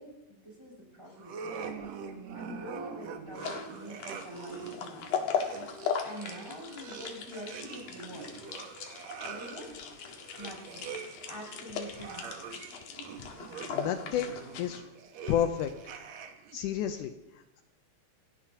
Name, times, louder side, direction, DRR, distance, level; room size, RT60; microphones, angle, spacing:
voice 1, 0.0-1.7 2.3-5.4 6.0-8.3 9.2-9.7 10.4-10.9 11.3-12.6, equal, 5° right, -4 dB, 5.9 m, -45 dB
sound 1, 1.2-16.6, right 6 dB, 65° right, 1.8 m, -44 dB
sound 2, 3.4-14.8, left 7 dB, 65° left, 3.0 m, -38 dB
voice 2, 13.7-14.8 15.3-15.7 16.5-17.6, left 10 dB, 85° left, 7 dB, 1.8 m, -31 dB
28.0 x 16.0 x 2.9 m, 0.95 s
omnidirectional pair, 4.5 m